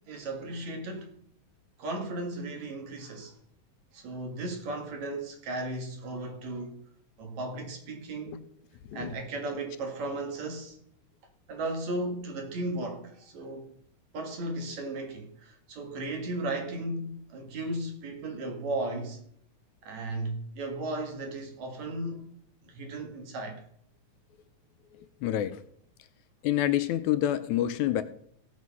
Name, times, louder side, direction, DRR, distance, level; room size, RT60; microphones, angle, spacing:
voice 1, 0.1-1.1 1.8-3.3 3.9-6.8 7.2-8.4 8.9-10.8 11.5-13.7 14.1-19.2 19.8-22.3 22.6-23.6, right 2 dB, 65° right, 3.1 m, -35 dB
voice 2, 24.9-25.6 26.4-28.0, left 12 dB, 80° left, 1.9 m, -28 dB
16.5 x 6.4 x 5.5 m
omnidirectional pair, 3.5 m